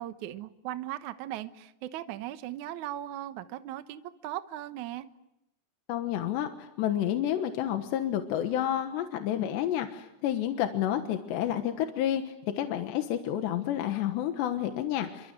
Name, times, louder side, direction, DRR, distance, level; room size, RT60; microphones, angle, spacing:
voice 1, 0.0-5.1, right 13 dB, 75° right, 10 dB, 1.7 m, -38 dB
voice 2, 5.9-15.3, left 11 dB, 75° left, 6 dB, 3.5 m, -30 dB
28.5 x 25.5 x 7.9 m, 0.88 s
omnidirectional pair, 5.1 m